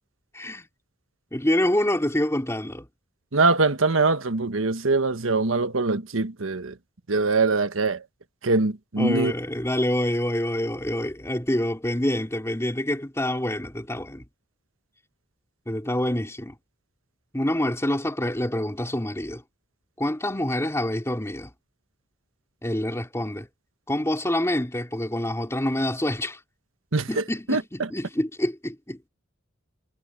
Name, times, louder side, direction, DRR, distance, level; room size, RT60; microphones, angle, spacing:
voice 1, 0.3-0.7 1.3-2.9 9.0-14.2 15.7-16.6 17.3-19.4 20.0-21.5 22.6-23.5 23.9-26.4 27.1-29.1, left 1 dB, 15° left, 3.5 m, -26 dB
voice 2, 3.3-6.7 7.1-8.0 8.4-9.3 26.9-27.2 27.5-27.6, right 3 dB, 90° right, 1.3 m, -23 dB
head